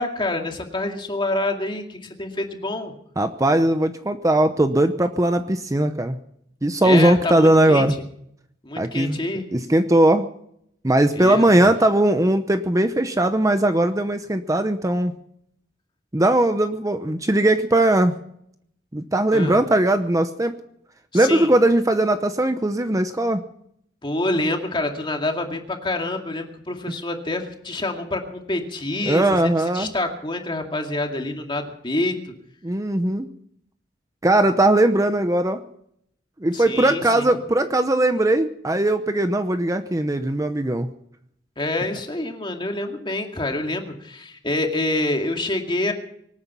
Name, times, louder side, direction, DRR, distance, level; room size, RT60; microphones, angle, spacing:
voice 1, 0.0-2.9 6.8-7.9 8.6-9.5 11.1-11.5 19.3-19.6 21.1-21.5 24.0-32.2 36.5-37.4 41.6-45.9, left 2 dB, 30° left, 3 dB, 2.3 m, -27 dB
voice 2, 3.2-6.2 6.6-7.9 8.8-9.2 9.5-10.3 10.8-15.1 16.1-18.1 18.9-20.6 21.1-23.4 29.1-29.9 32.6-33.3 34.2-35.6 36.4-40.9, right 1 dB, 20° right, 8 dB, 0.8 m, -19 dB
24.5 x 9.5 x 5.7 m, 0.71 s
head